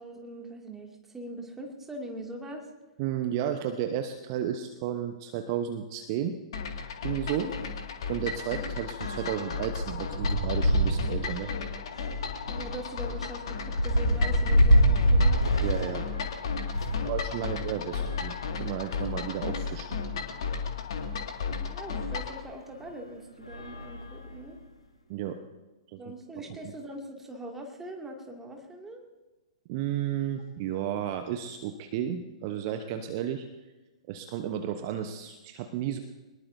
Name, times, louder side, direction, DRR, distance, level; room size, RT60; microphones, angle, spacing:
voice 1, 0.0-2.7 7.4-7.7 12.0-15.6 16.9-17.1 17.9-18.1 21.7-24.6 26.0-29.0, right 1 dB, 10° right, 1 dB, 2.4 m, -42 dB
voice 2, 3.0-6.3 7.0-7.5 8.1-11.5 15.6-16.0 17.0-19.9 25.1-25.4 25.9-26.0 29.7-33.5 34.1-36.0, right 10 dB, 40° right, 7 dB, 0.9 m, -32 dB
sound 1, 6.5-22.4, left 5 dB, 55° left, 2.1 m, -34 dB
sound 2, 6.6-6.8 7.2-7.3 7.6-17.1 17.8-19.2 19.9-20.0 20.2-20.3 22.0-22.1 22.7-22.9 23.4-24.7, equal, 80° left, 5.1 m, -27 dB
23.0 x 20.5 x 2.7 m, 1.2 s
figure-of-eight pair, 110°, 3 cm